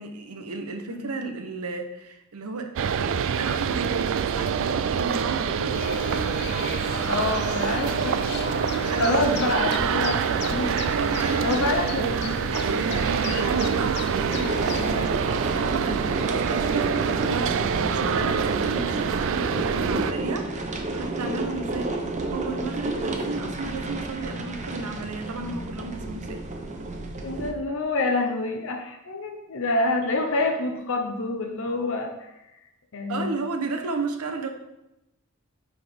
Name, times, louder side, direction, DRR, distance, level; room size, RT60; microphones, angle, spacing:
voice 1, 0.0-5.8 8.8-9.2 11.0-11.6 11.9-12.2 12.5-15.2 15.5-22.0 22.3-26.4 33.1-34.5, right 3 dB, 80° right, 5 dB, 0.9 m, -33 dB
sound 1, 2.8-20.1, right 7 dB, 60° right, 0.3 m, -26 dB
sound 2, 5.7-15.1, left 6 dB, 45° left, 0.4 m, -35 dB
voice 2, 7.0-8.2 8.7-10.7 11.1-11.2 11.4-12.6 27.2-32.3 32.9-33.3, left 2 dB, 65° left, 4 dB, 0.8 m, -27 dB
sound 3, 14.3-27.5, right 2 dB, 30° right, 0.7 m, -31 dB
9.3 x 4.3 x 3.5 m, 0.91 s
head